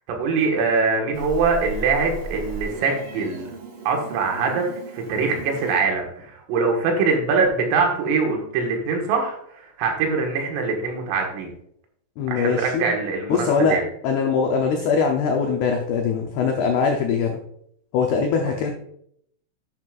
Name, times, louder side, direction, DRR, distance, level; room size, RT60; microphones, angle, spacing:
voice 1, 0.1-3.5 3.9-11.5 12.3-13.8, right 4 dB, 85° right, 2 dB, 4.2 m, -23 dB
Meow, 1.1-5.8, right 2 dB, 50° right, 3.5 m, -36 dB
voice 2, 12.2-12.9 13.3-13.8 14.0-17.4 17.9-18.7, left 5 dB, 85° left, 2 dB, 2.3 m, -22 dB
11.0 x 7.7 x 2.5 m, 0.69 s
omnidirectional pair, 5.8 m